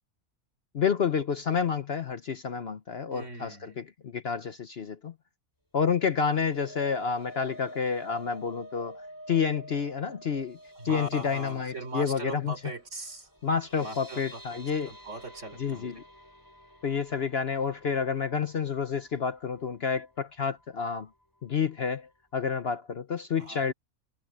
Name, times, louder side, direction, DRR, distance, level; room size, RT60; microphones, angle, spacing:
voice 1, 0.7-5.1 5.7-9.0 9.3-10.6 10.8-12.5 13.4-14.9 15.6-16.0 16.8-21.1 21.4-23.7, left 6 dB, 50° left, 1.0 m, -29 dB
voice 2, 3.1-3.8 10.8-13.3 13.8-14.4 14.9-15.9 23.4-23.6, right 1 dB, 55° right, 4.3 m, -39 dB
sound 1, 6.0-20.2 20.6-20.8 21.1-21.2, equal, 15° left, 7.9 m, -49 dB
omnidirectional pair, 1.5 m